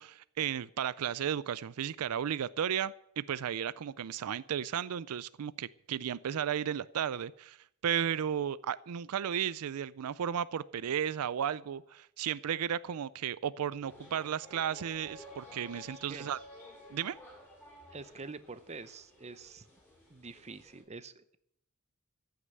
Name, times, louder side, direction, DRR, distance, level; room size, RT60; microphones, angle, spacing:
voice 1, 0.0-7.6 7.8-16.4 16.9-17.2, right 9 dB, 85° right, 18 dB, 0.4 m, -34 dB
sound 1, 13.8-20.8, left 2 dB, 10° left, 5.3 m, -53 dB
voice 2, 17.9-19.6 20.1-21.4, right 4 dB, 30° right, 13 dB, 0.7 m, -46 dB
14.5 x 6.6 x 9.0 m, 0.74 s
head